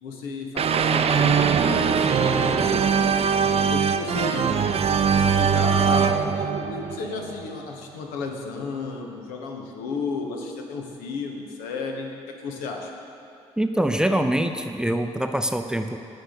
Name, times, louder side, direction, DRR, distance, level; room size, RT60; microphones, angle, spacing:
voice 1, 0.0-4.4 5.2-12.1 12.4-12.9, left 4 dB, 75° left, 2 dB, 1.1 m, -33 dB
sound 1, 0.6-7.5, right 6 dB, 45° right, 0.6 m, -21 dB
voice 2, 13.6-16.0, right 1 dB, 5° right, 6 dB, 0.6 m, -24 dB
16.5 x 5.5 x 3.8 m, 2.7 s
hypercardioid pair, 45°, 15 cm